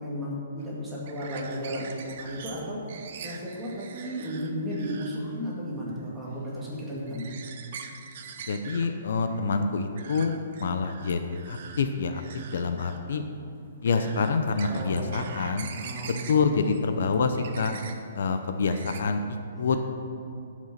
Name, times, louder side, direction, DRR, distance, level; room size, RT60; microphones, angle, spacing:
voice 1, 0.0-2.8 3.2-7.3 14.7-15.2 15.8-16.1 16.4-16.6 19.5-19.8, equal, 5° right, -6 dB, 1.9 m, -34 dB
sound 1, 0.6-19.0, right 6 dB, 40° right, 0.7 m, -45 dB
voice 2, 8.4-12.2 12.5-13.2 13.8-15.7 16.1-17.7 18.1-19.2 19.6-19.8, left 4 dB, 65° left, 7 dB, 0.7 m, -27 dB
11.5 x 6.1 x 5.9 m, 2.6 s
hypercardioid pair, 170°, 0 cm